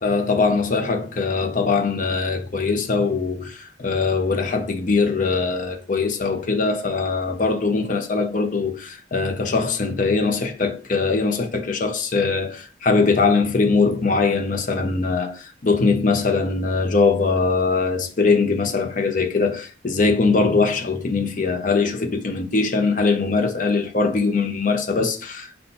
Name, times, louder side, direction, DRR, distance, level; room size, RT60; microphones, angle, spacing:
voice 1, 0.0-25.6, left 4 dB, 45° left, 0.6 m, -21 dB
5.3 x 2.2 x 4.1 m
head